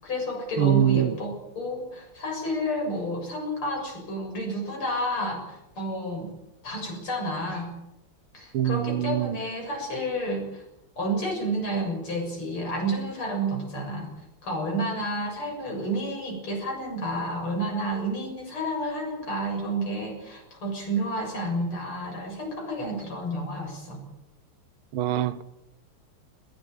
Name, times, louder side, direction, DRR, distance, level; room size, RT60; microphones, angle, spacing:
voice 1, 0.0-6.3 6.6-7.7 8.3-10.6 11.0-14.1 14.4-24.0, right 1 dB, 90° left, 7.8 m, -30 dB
voice 2, 0.6-1.1 8.5-9.4 24.9-25.4, right 11 dB, 80° right, 1.9 m, -23 dB
21.0 x 17.0 x 8.9 m
omnidirectional pair, 2.3 m